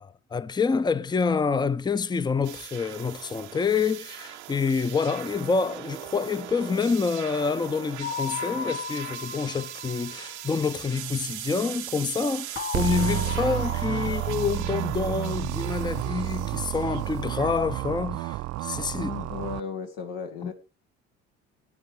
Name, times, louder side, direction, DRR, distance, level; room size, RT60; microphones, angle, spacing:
voice 1, 0.0-19.1 20.4-20.5, left 5 dB, 15° left, 0.6 m, -27 dB
sound 1, 2.4-17.2, right 14 dB, 85° right, 0.8 m, -40 dB
sound 2, 8.0-10.9 12.6-15.4, left 6 dB, 40° left, 3.9 m, -36 dB
sound 3, 12.7-19.6, right 18 dB, 50° right, 0.5 m, -30 dB
voice 2, 18.9-20.5, left 6 dB, 70° left, 1.6 m, -35 dB
14.5 x 8.3 x 4.8 m
hypercardioid pair, 65°, 33 cm